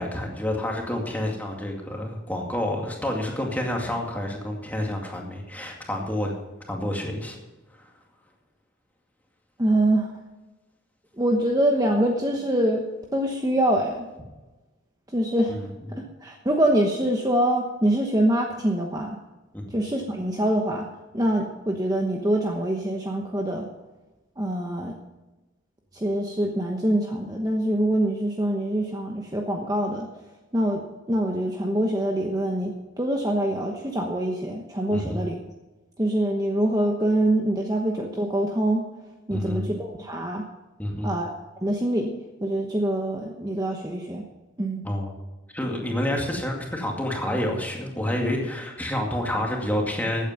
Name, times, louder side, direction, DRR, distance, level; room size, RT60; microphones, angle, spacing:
voice 1, 0.0-6.3 6.7-7.4 7.7-7.9 15.5-15.7 15.9-16.0 19.5-19.6 34.9-35.2 39.3-39.7 40.8-41.2 44.8-45.1 45.5-50.3, left 1 dB, 10° left, 0 dB, 2.2 m, -28 dB
voice 2, 9.6-10.1 11.2-12.8 13.1-14.1 15.1-19.2 19.7-20.9 21.1-23.7 24.4-24.9 25.9-30.1 30.5-30.8 31.1-35.4 36.0-38.9 39.3-40.4 41.0-42.1 42.4-44.3 44.6-44.8, right 1 dB, 15° right, 1 dB, 1.0 m, -24 dB
15.5 x 9.0 x 5.8 m, 1.1 s
head